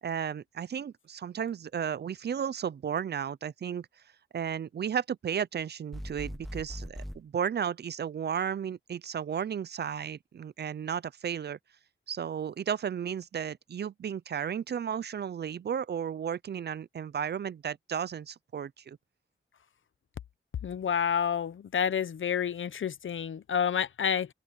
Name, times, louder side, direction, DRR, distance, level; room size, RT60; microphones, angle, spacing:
voice 1, 0.0-3.9 4.3-11.6 12.1-19.0, right 8 dB, 55° right, 0.4 m, -34 dB
sound 1, 5.9-7.2, equal, ahead, 0.9 m, -40 dB
voice 2, 20.6-24.3, left 8 dB, 70° left, 0.8 m, -29 dB
wide cardioid pair, 175°, 21 cm